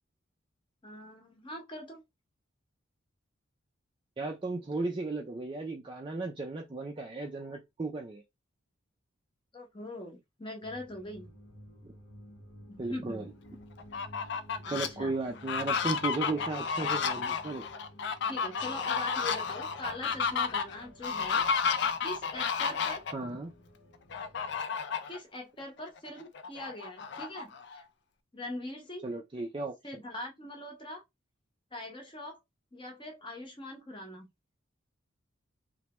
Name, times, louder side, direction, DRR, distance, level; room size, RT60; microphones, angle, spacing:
voice 1, 0.8-2.0 9.5-11.3 12.7-13.3 14.6-15.2 18.3-23.0 25.1-27.8 28.3-29.0 29.8-31.0 31.7-32.4 32.7-34.3, left 1 dB, 25° left, 0.8 m, -42 dB
voice 2, 4.2-8.2 11.8-11.9 12.8-13.3 14.7-17.6 23.1-23.5 29.0-29.7, right 3 dB, 25° right, 0.4 m, -35 dB
sound 1, 10.6-24.6, equal, 80° left, 0.9 m, -53 dB
Fowl, 13.8-14.9 15.4-23.1 24.1-25.2 25.6-25.7 26.1-27.8, left 6 dB, 55° left, 0.4 m, -32 dB
3.2 x 2.2 x 2.9 m
head